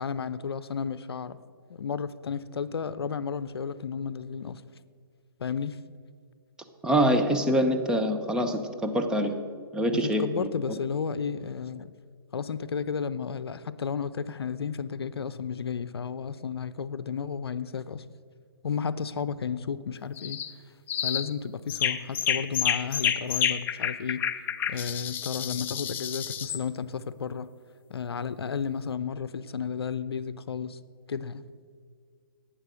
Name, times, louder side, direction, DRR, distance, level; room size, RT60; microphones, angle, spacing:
voice 1, 0.0-1.4 1.7-4.6 5.4-5.8 9.9-11.9 12.3-18.0 18.6-20.4 21.0-24.3 24.7-27.5 27.9-30.8 31.1-31.4, left 6 dB, 80° left, 15 dB, 0.6 m, -33 dB
voice 2, 6.8-9.3 9.7-10.5, equal, 5° right, 4 dB, 0.8 m, -25 dB
sound 1, 20.2-20.5 20.9-21.3 21.7-26.6, left 9 dB, 15° left, 0.4 m, -29 dB
11.5 x 8.9 x 6.3 m, 2.1 s
hypercardioid pair, 135°, 13 cm